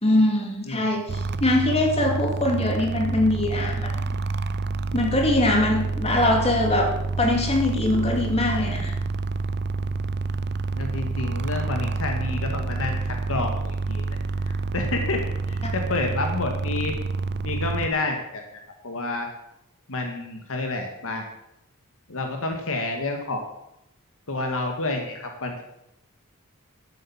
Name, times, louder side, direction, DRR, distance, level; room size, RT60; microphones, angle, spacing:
voice 1, 0.0-4.0 4.9-6.9 7.2-9.0, left 1 dB, 30° left, 1 dB, 2.8 m, -22 dB
sound 1, 1.1-17.9, right 3 dB, 50° right, 0.7 m, -28 dB
voice 2, 10.7-14.0 14.5-16.9 17.4-18.4 18.8-19.3 19.9-21.2 22.1-23.5 24.3-25.6, left 2 dB, 65° left, 3 dB, 1.8 m, -29 dB
12.0 x 8.6 x 7.2 m, 0.80 s
head